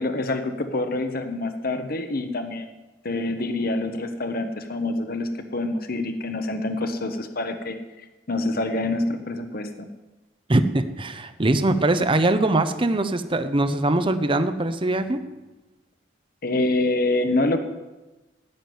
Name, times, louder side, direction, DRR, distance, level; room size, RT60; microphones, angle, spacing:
voice 1, 0.0-2.7 3.0-7.8 8.3-9.9 16.4-17.6, left 2 dB, 50° left, 7 dB, 1.1 m, -26 dB
voice 2, 10.5-15.2, right 2 dB, 25° right, 10 dB, 0.7 m, -22 dB
15.0 x 7.4 x 9.4 m, 1.1 s
head